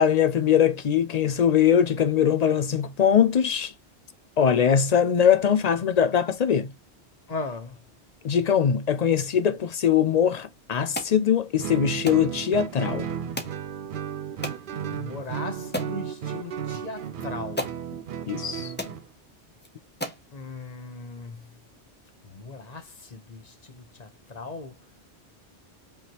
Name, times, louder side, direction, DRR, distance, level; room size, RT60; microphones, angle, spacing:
voice 1, 0.0-3.7 4.4-6.7 8.2-13.1 18.3-18.7, left 8 dB, 55° left, 0.4 m, -21 dB
voice 2, 7.3-7.8 14.9-17.7 20.3-21.5 22.2-24.8, left 3 dB, 40° left, 1.0 m, -38 dB
sound 1, 10.9-11.2 12.1-12.3 13.4-13.6 14.4-14.6 15.2-15.3 15.7-16.0 17.0-17.1 17.6-17.8 18.4-18.5 18.8-19.0 19.6-19.7 20.0-20.3, left 1 dB, 10° left, 0.8 m, -33 dB
Guitar, 11.6-19.1, right 8 dB, 55° right, 0.7 m, -34 dB
5.3 x 3.3 x 2.9 m
omnidirectional pair, 1.1 m